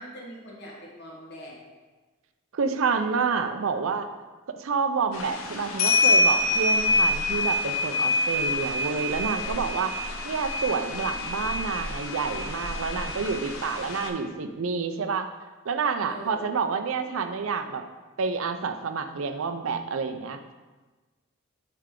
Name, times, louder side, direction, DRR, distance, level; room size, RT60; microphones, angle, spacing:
voice 1, 0.0-1.6 9.4-9.9 16.0-16.5, equal, 55° left, -3 dB, 1.4 m, -43 dB
voice 2, 2.5-4.1 4.6-9.9 10.2-15.3 15.7-17.8 18.2-20.4, right 5 dB, 80° right, 8 dB, 0.5 m, -28 dB
sound 1, 5.1-14.1, left 2 dB, 90° left, 0.7 m, -26 dB
8.4 x 3.3 x 3.7 m, 1.2 s
head